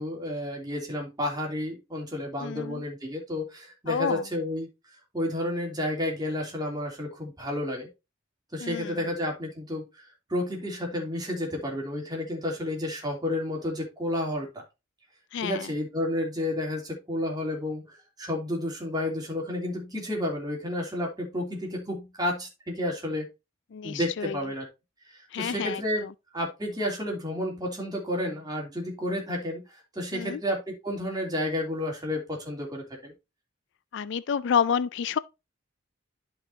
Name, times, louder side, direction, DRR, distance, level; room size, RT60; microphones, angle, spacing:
voice 1, 0.0-4.7 5.1-7.9 8.5-14.6 15.4-23.3 23.8-24.6 25.1-26.0 26.3-33.1, left 1 dB, 20° right, 3.1 m, -31 dB
voice 2, 2.4-2.8 3.9-4.2 8.6-8.9 15.3-15.7 23.7-24.4 25.3-25.8 30.1-30.4 33.9-35.2, left 7 dB, 65° left, 0.4 m, -29 dB
11.5 x 5.5 x 2.8 m
head